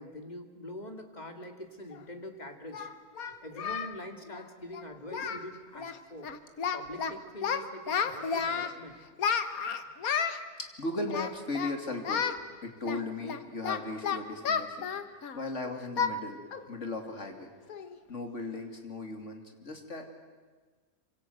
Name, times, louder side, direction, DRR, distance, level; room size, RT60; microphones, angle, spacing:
voice 1, 0.0-2.9 3.4-6.3 6.7-9.0, left 1 dB, 30° left, 5 dB, 2.3 m, -44 dB
Singing, 1.9-2.0 2.7-3.9 4.2-4.4 4.7-4.8 5.1-5.5 5.7-6.0 6.2-7.1 7.4-8.7 9.2-10.4 11.1-11.7 12.0-12.4 12.8-15.5 16.0-16.2 16.5-16.7 17.1-17.2 17.7-18.0, left 6 dB, 75° left, 1.7 m, -32 dB
voice 2, 10.6-12.3 12.6-16.4 16.7-17.5 18.1-20.1, left 2 dB, 55° left, 4 dB, 3.1 m, -37 dB
27.0 x 25.5 x 8.0 m, 1.4 s
omnidirectional pair, 1.5 m